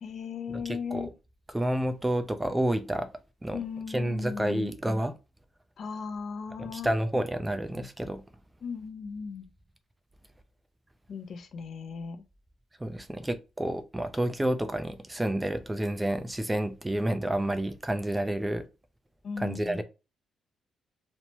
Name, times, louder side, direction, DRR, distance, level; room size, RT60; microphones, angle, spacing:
voice 1, 0.0-1.1 3.5-4.7 5.8-6.9 8.6-9.5 11.1-12.2 19.2-19.8, left 5 dB, 55° left, 0.6 m, -37 dB
voice 2, 0.5-1.1 1.5-3.1 3.4-3.6 3.9-5.1 6.6-8.2 12.8-18.6 19.4-19.8, right 1 dB, 15° right, 0.4 m, -29 dB
3.1 x 2.0 x 2.9 m
cardioid pair, 90°, 0 cm